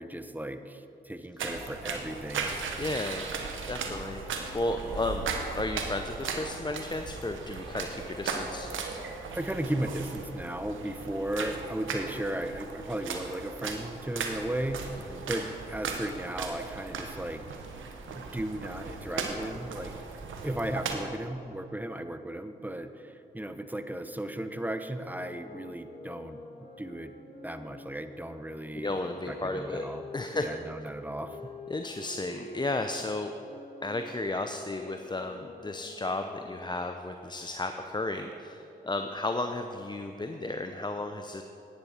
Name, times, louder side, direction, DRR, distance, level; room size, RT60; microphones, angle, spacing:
voice 1, 0.0-2.6 9.3-17.4 18.1-20.0 20.4-26.4 26.8-27.1 27.4-29.0 29.3-30.0 30.3-31.4, right 1 dB, 10° right, 9 dB, 0.8 m, -35 dB
sound 1, 1.4-20.9, right 5 dB, 80° right, 1.0 m, -37 dB
voice 2, 2.8-3.3 3.7-4.2 4.5-5.3 5.6-8.7 15.1-15.2 28.7-29.9 30.1-30.5 31.7-33.3 33.8-41.4, left 2 dB, 20° left, 6 dB, 0.7 m, -33 dB
sound 2, 25.0-30.6 31.2-36.8, left 2 dB, 50° left, 2.1 m, -48 dB
10.5 x 10.0 x 4.4 m, 2.9 s
supercardioid pair, 40°, 20 cm